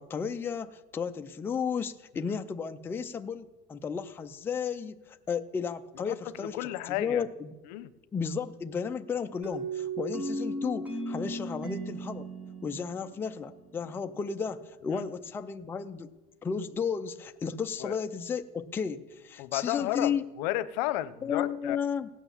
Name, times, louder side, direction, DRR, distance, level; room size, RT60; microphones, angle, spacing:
voice 1, 0.0-6.6 6.9-7.5 8.1-12.3 12.6-16.1 16.4-20.2 21.2-22.1, left 6 dB, 10° left, 7 dB, 0.4 m, -33 dB
voice 2, 6.1-7.2 7.7-7.9 14.9-15.0 17.8-18.0 19.4-21.8, left 15 dB, 80° left, 15 dB, 0.8 m, -33 dB
sound 1, 9.4-14.1, right 2 dB, 5° right, 1.3 m, -36 dB
16.5 x 9.0 x 7.2 m, 1.1 s
cardioid pair, 170°, 21 cm